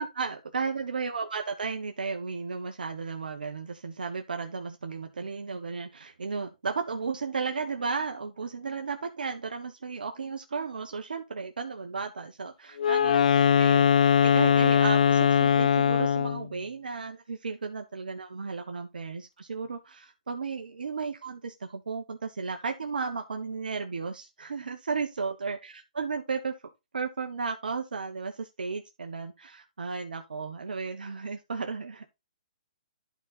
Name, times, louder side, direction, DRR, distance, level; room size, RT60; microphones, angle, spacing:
voice 1, 0.0-26.6 26.9-32.1, right 5 dB, 80° right, 1.1 m, -34 dB
Wind instrument woodwind instrument, 12.8-16.5, left 8 dB, 60° left, 0.6 m, -21 dB
11.5 x 4.1 x 4.1 m
hypercardioid pair, 140°, 5 cm